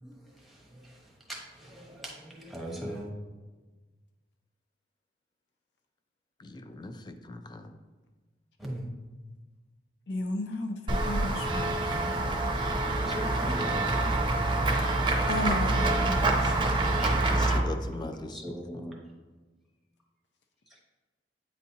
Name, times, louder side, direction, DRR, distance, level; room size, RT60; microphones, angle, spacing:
voice 1, 0.0-3.1 8.6-8.9 10.9-11.1 12.8-14.1 17.0-19.0 20.7-20.8, equal, ahead, -3 dB, 1.0 m, -41 dB
voice 2, 6.4-7.8 17.4-18.9, left 2 dB, 25° left, 8 dB, 0.3 m, -41 dB
voice 3, 10.1-12.1 15.3-16.5, left 1 dB, 75° left, 4 dB, 0.6 m, -34 dB
Run / Walk footsteps / Bell, 10.9-17.6, right 2 dB, 25° right, 0.6 m, -26 dB
8.5 x 4.1 x 2.8 m, 1.3 s
head